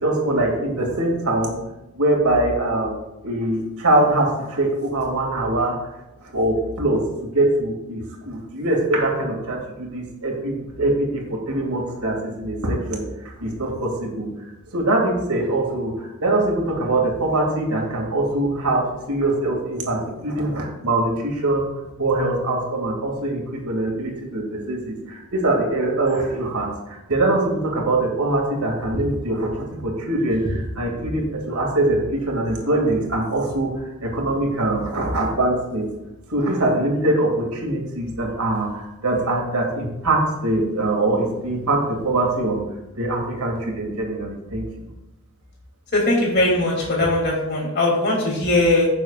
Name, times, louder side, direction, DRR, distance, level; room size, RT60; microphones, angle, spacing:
voice 1, 0.0-1.5 1.9-2.9 3.2-5.9 6.3-7.0 7.3-13.0 13.4-21.7 22.0-35.9 36.3-42.6 43.0-44.6, right 2 dB, 85° right, 0 dB, 2.5 m, -23 dB
voice 2, 45.9-48.9, left 2 dB, 50° left, -3 dB, 3.1 m, -20 dB
15.5 x 7.0 x 2.5 m, 0.98 s
head